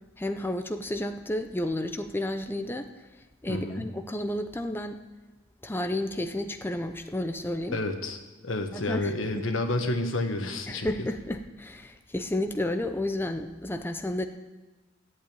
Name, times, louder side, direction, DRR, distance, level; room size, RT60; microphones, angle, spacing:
voice 1, 0.2-2.9 3.4-5.0 5.6-7.8 8.7-9.1 10.7-14.3, left 1 dB, 10° left, 7 dB, 0.6 m, -31 dB
voice 2, 3.5-3.9 7.7-8.2 8.4-11.1, left 2 dB, 85° left, 6 dB, 1.5 m, -30 dB
14.0 x 8.1 x 8.8 m, 1.2 s
head